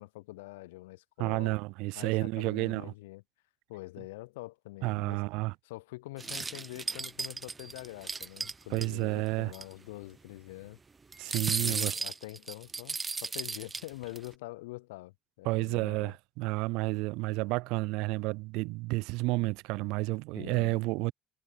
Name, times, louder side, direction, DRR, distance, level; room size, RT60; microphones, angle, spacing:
voice 1, 0.0-1.6 2.0-3.2 3.7-5.2 5.6-10.8 11.5-16.1 20.4-20.8, left 20 dB, 75° left, 0.5 m, -45 dB
voice 2, 1.2-2.9 4.8-5.5 8.7-9.5 11.2-11.9 15.5-21.1, right 23 dB, 65° right, 0.4 m, -31 dB
sound 1, 6.2-8.9 9.3-9.4 9.5-9.7 11.1-14.3, right 4 dB, 25° right, 1.0 m, -35 dB
figure-of-eight pair, 55°, 0 cm